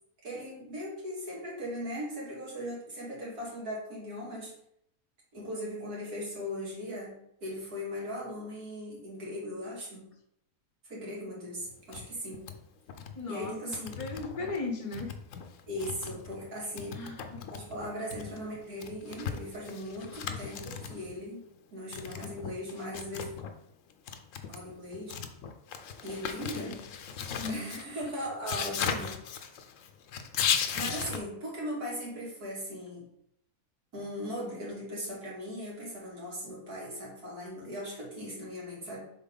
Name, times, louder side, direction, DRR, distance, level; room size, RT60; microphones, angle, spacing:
voice 1, 0.2-4.5 5.3-10.1 10.8-12.5 13.3-13.9 15.7-17.0 17.5-21.4 21.7-23.3 24.5-25.2 26.0-26.8 27.5-29.1 30.4-33.1 33.9-39.0, equal, 85° right, -5 dB, 2.9 m, -38 dB
sound 1, 11.7-12.1 12.3-12.6 12.9-13.2 13.4-14.6 14.9-16.5 16.8-21.2 21.9-23.5 23.9-31.2, left 7 dB, 65° left, 1.0 m, -37 dB
voice 2, 13.2-15.1 16.9-17.4 27.4-27.8, left 3 dB, 30° left, 2 dB, 0.7 m, -37 dB
7.2 x 4.3 x 3.9 m, 0.74 s
omnidirectional pair, 1.6 m